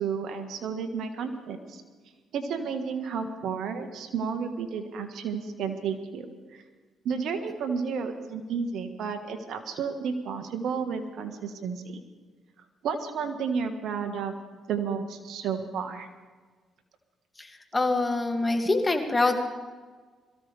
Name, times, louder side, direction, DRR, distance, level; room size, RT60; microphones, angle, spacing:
voice 1, 0.0-1.8 2.3-6.6 7.0-12.0 12.8-14.3 14.7-16.1, right 6 dB, 75° right, 7 dB, 1.5 m, -32 dB
voice 2, 17.7-19.4, left 2 dB, 20° left, 4 dB, 2.4 m, -24 dB
22.0 x 15.0 x 3.5 m, 1.4 s
supercardioid pair, 60°, 0 cm